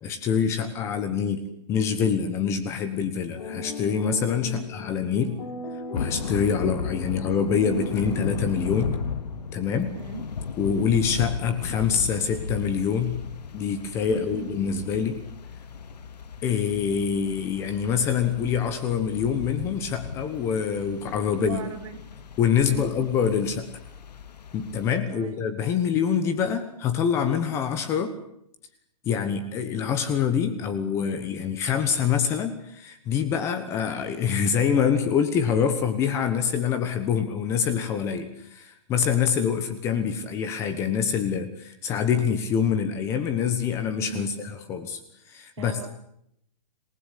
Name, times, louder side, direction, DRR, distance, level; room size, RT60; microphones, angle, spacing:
voice 1, 0.0-5.4 5.9-9.0 9.5-10.0 10.6-13.2 13.5-15.2 16.4-21.6 22.4-23.7 24.5-28.1 29.0-44.3 44.7-45.0 45.3-45.8, left 7 dB, 15° left, 9 dB, 1.2 m, -25 dB
sound 1, 3.3-9.4, left 1 dB, 50° left, 5.7 m, -39 dB
voice 2, 4.4-4.7 10.0-10.2 14.1-14.5 21.4-22.0 22.7-22.9 25.1-25.4 44.1-44.4 45.6-45.9, right 7 dB, 45° right, 6 dB, 3.4 m, -37 dB
Thunder / Rain, 5.9-25.0, left 5 dB, 75° left, 2.6 m, -36 dB
27.5 x 19.5 x 8.4 m, 0.76 s
hypercardioid pair, 175°, 21 cm